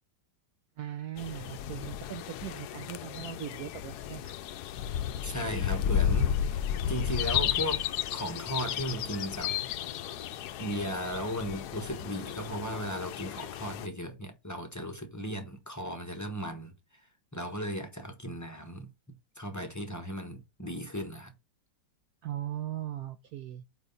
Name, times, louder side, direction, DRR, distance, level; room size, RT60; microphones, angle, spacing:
voice 1, 0.8-4.3 22.2-23.6, right 11 dB, 65° right, 1.0 m, -39 dB
sound 1, 1.2-13.9, left 9 dB, 70° left, 1.0 m, -33 dB
voice 2, 5.2-7.8 8.1-9.6 10.6-16.7 17.3-18.9 19.4-21.3, equal, 15° left, 0.7 m, -36 dB
9.0 x 3.1 x 3.8 m
omnidirectional pair, 2.0 m